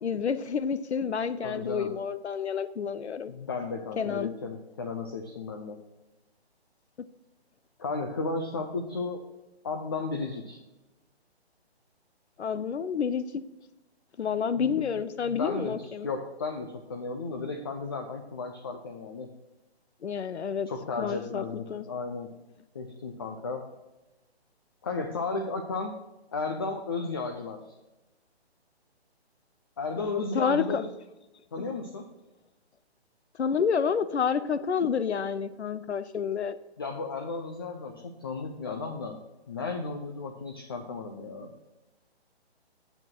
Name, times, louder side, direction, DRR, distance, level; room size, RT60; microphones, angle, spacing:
voice 1, 0.0-3.3 4.0-4.3 12.4-13.2 14.2-16.1 20.0-20.7 21.0-21.4 21.7-21.9 30.0-30.8 31.6-31.7 33.4-36.6, left 6 dB, 80° left, 14 dB, 0.7 m, -29 dB
voice 2, 1.4-2.0 3.3-5.8 7.8-9.2 9.6-10.6 14.6-14.9 15.2-19.3 20.7-22.4 22.7-23.7 24.8-26.0 26.3-27.7 29.8-30.9 31.5-32.1 36.8-39.2 39.5-41.5, left 3 dB, 20° left, 4 dB, 0.4 m, -34 dB
8.4 x 7.8 x 4.6 m, 1.0 s
hypercardioid pair, 150°, 33 cm